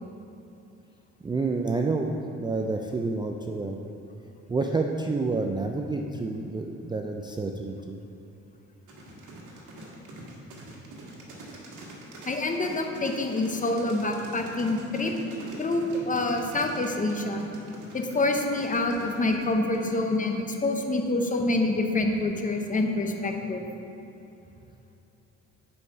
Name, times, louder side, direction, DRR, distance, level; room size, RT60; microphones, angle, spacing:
voice 1, 1.2-3.8 4.5-8.0, right 3 dB, 15° right, 2 dB, 0.3 m, -29 dB
sound 1, 8.9-20.3, right 2 dB, 80° right, 1.5 m, -43 dB
voice 2, 12.3-15.2 15.6-17.5 17.9-23.6, left 2 dB, 25° left, 3 dB, 0.8 m, -27 dB
7.0 x 4.9 x 5.3 m, 2.8 s
cardioid pair, 90°, 30 cm